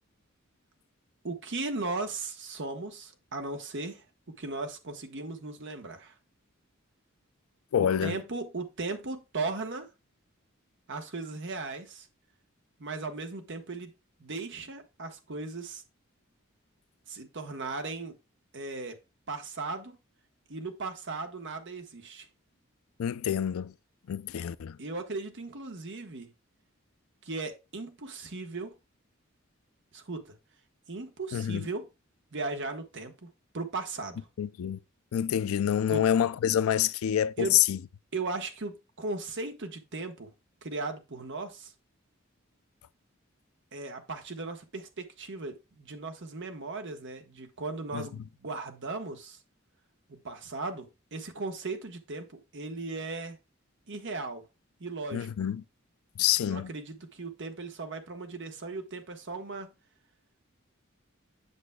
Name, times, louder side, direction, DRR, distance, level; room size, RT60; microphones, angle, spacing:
voice 1, 1.2-6.2 7.8-9.9 10.9-12.1 12.8-13.9 14.2-15.8 17.1-18.1 18.5-19.0 19.3-20.0 20.5-22.3 24.8-26.3 27.2-28.8 29.9-30.4 30.9-31.9 32.3-34.3 35.9-36.0 37.4-37.6 38.1-40.3 40.6-41.7 43.7-49.4 50.1-53.4 53.9-54.4 54.8-55.3 56.4-59.7, right 3 dB, 60° right, 1.1 m, -37 dB
voice 2, 7.7-8.2 23.0-23.7 24.1-24.8 31.3-31.7 34.4-34.8 35.1-37.8 47.9-48.1 55.1-55.6 56.2-56.7, left 10 dB, 90° left, 0.4 m, -27 dB
8.1 x 6.7 x 2.2 m
head